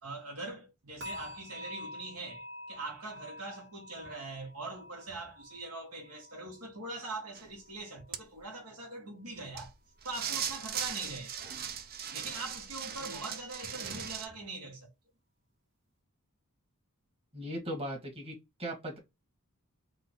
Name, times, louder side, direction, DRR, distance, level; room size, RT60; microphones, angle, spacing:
voice 1, 0.0-9.7 10.0-11.6 12.1-14.9, right 2 dB, 75° right, 1.7 m, -42 dB
sound 1, 1.0-8.1 8.4-8.8 9.3-9.4, left 1 dB, 60° right, 1.7 m, -48 dB
sound 2, 7.4-7.5 8.1-8.2 9.6-9.7 10.0-14.3, right 8 dB, 45° right, 0.6 m, -38 dB
voice 2, 17.3-18.3 18.6-19.0, equal, 25° right, 1.5 m, -38 dB
3.9 x 2.5 x 4.3 m
head